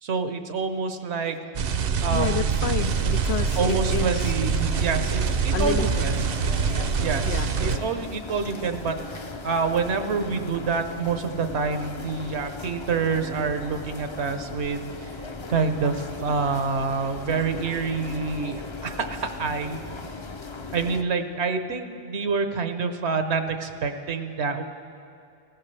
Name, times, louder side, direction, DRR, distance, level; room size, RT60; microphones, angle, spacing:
voice 1, 0.0-1.4 2.0-2.7 3.6-6.3 7.0-14.9 15.5-19.8 20.7-24.6, right 5 dB, 80° right, 8 dB, 1.1 m, -27 dB
sound 1, 1.5-7.8, right 6 dB, 65° right, 0.8 m, -25 dB
voice 2, 1.8-4.3 5.5-6.1 6.4-7.9, left 9 dB, 80° left, 11 dB, 0.8 m, -31 dB
sound 2, 2.8-21.0, left 3 dB, 35° left, 0.5 m, -38 dB
19.0 x 16.0 x 3.3 m, 2.6 s
omnidirectional pair, 1.1 m